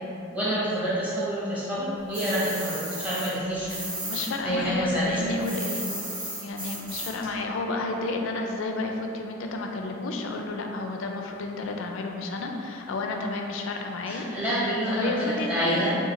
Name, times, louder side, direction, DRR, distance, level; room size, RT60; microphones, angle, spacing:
voice 1, 0.3-3.7 4.4-5.4 14.1-16.0, equal, 10° right, -9 dB, 0.9 m, -27 dB
sound 1, 2.1-4.3 4.6-7.3, right 1 dB, 25° right, 1.1 m, -35 dB
voice 2, 4.1-5.9 6.4-14.3 15.0-15.9, left 3 dB, 70° left, 2 dB, 0.4 m, -31 dB
4.8 x 2.3 x 3.0 m, 2.8 s
head